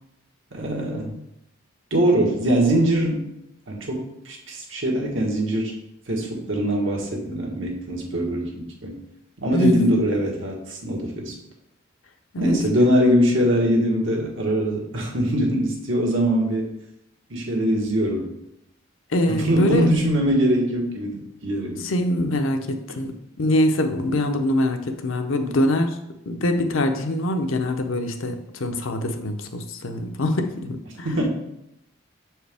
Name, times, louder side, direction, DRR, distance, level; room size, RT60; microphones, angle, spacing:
voice 1, 0.5-1.1 1.9-3.3 3.7-5.7 6.1-9.0 9.4-11.3 12.4-16.7 17.3-18.3 19.3-21.9 31.0-31.3, equal, 70° right, 0 dB, 1.4 m, -22 dB
voice 2, 9.5-9.9 12.3-12.5 19.1-19.9 21.8-22.7 23.0-26.0 26.3-31.1, left 1 dB, 90° left, 6 dB, 0.7 m, -23 dB
6.7 x 4.6 x 3.5 m, 0.82 s
head